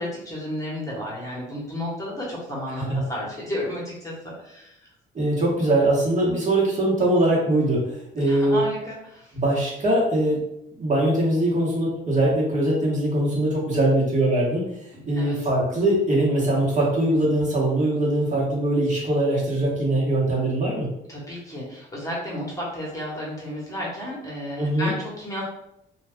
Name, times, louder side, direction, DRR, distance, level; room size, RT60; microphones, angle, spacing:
voice 1, 0.0-4.9 8.2-9.4 14.9-15.4 21.1-25.4, equal, 15° left, -5 dB, 1.1 m, -32 dB
voice 2, 5.1-7.8 8.1-8.6 9.3-10.4 10.8-20.9 24.6-24.9, right 1 dB, 40° right, -5 dB, 1.2 m, -22 dB
2.3 x 2.3 x 3.4 m, 0.79 s
cardioid pair, 90°, 20 cm